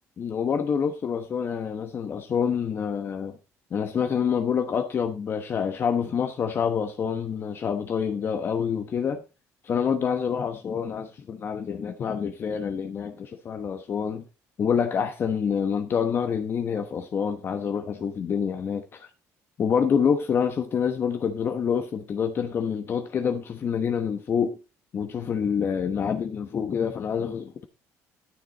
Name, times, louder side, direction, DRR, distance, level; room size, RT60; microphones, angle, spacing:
voice 1, 0.2-3.4 3.7-9.2 9.6-14.2 14.6-19.1 19.6-24.6 24.9-27.6, left 7 dB, 40° left, 1.0 m, -27 dB
12.5 x 6.8 x 4.0 m
cardioid pair, 145°, 6 cm